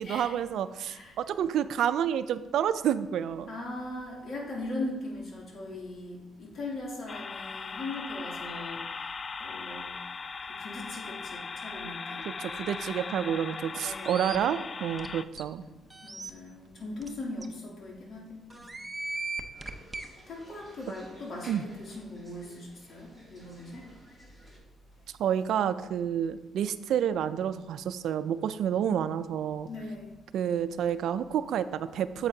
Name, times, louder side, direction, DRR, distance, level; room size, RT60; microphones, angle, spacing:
voice 1, 0.0-3.5 12.2-15.7 21.5-21.6 25.2-29.7 30.3-32.3, right 9 dB, 75° right, 13 dB, 0.4 m, -29 dB
voice 2, 0.8-1.2 3.5-8.8 9.4-9.9 10.5-12.3 13.7-14.3 16.0-18.7 20.3-23.8 29.7-30.2, left 2 dB, 55° left, -3 dB, 2.6 m, -39 dB
sound 1, 7.1-15.2, left 5 dB, 40° left, 0.3 m, -39 dB
sound 2, 13.9-14.4 15.0-15.1 15.4-15.5 15.9-16.3 17.0-17.1 17.4-17.5 18.5-20.1, right 3 dB, 20° right, 0.7 m, -37 dB
sound 3, 19.5-24.6, equal, 20° left, 2.5 m, -55 dB
8.9 x 7.8 x 2.7 m, 1.1 s
cardioid pair, 90°, 0 cm